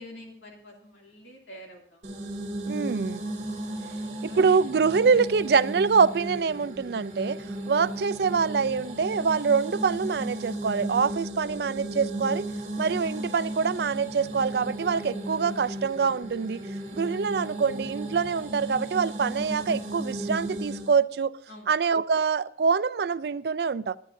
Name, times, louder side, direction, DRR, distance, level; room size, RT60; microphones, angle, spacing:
voice 1, 0.0-2.1 3.8-4.6 21.5-21.7, left 1 dB, 90° left, 2.7 m, -47 dB
sound 1, 2.0-20.9, right 1 dB, 40° right, 2.6 m, -35 dB
voice 2, 2.7-3.2 4.4-12.5 12.8-16.6 16.9-21.3 21.7-24.0, right 5 dB, 65° right, 0.4 m, -25 dB
20.5 x 9.5 x 2.6 m
head